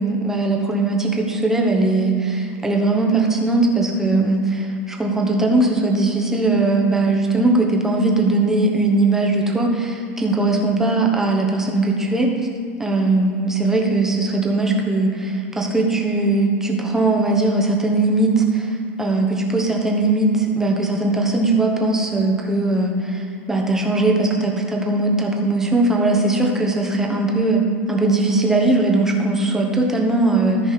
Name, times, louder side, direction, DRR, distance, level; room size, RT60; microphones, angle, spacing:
voice 1, 0.0-12.3 12.8-18.7 19.0-30.7, right 2 dB, 5° right, 0 dB, 1.1 m, -19 dB
14.0 x 5.0 x 4.1 m, 2.4 s
supercardioid pair, 140°, 7 cm